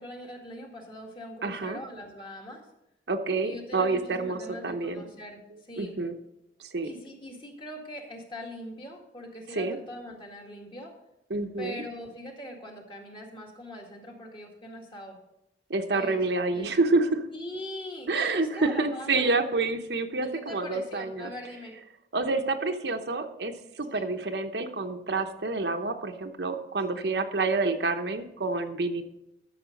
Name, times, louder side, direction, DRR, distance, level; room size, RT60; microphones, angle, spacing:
voice 1, 0.0-2.7 3.4-6.0 6.8-10.9 11.6-15.2 15.9-16.2 16.5-16.8 17.3-19.3 20.2-21.8 23.9-24.1 26.9-27.3, left 1 dB, 30° left, 0 dB, 1.9 m, -42 dB
voice 2, 1.4-1.8 3.1-5.0 5.8-6.1 6.6-6.9 9.5-9.8 11.3-11.8 15.7-17.2 18.1-21.3 22.1-29.0, right 3 dB, 70° right, 5 dB, 0.9 m, -28 dB
13.0 x 6.8 x 5.2 m, 0.86 s
head